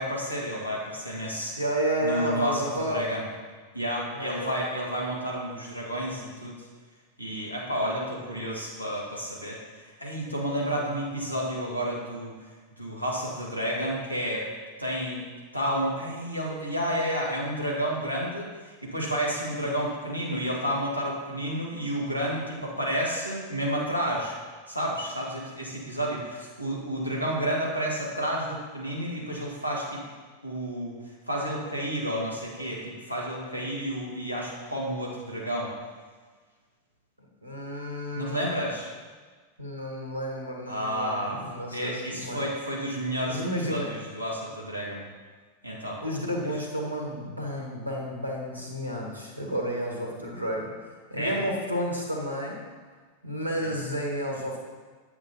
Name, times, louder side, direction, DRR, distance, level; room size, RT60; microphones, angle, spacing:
voice 1, 0.0-1.6 2.0-3.2 3.7-6.6 7.2-12.3 12.8-14.5 14.8-15.2 15.5-24.3 24.7-30.0 30.4-31.0 31.3-35.7 38.1-38.9 40.7-45.0 45.6-46.0 51.2-51.4 53.6-53.7, equal, 90° left, -3 dB, 1.7 m, -31 dB
voice 2, 1.6-3.0 4.1-4.6 27.2-27.5 37.4-38.5 39.6-42.5 43.2-43.9 46.0-52.6 53.2-54.6, equal, 85° right, -1 dB, 1.5 m, -31 dB
8.9 x 7.9 x 2.8 m, 1.5 s
figure-of-eight pair, 90°, 0 cm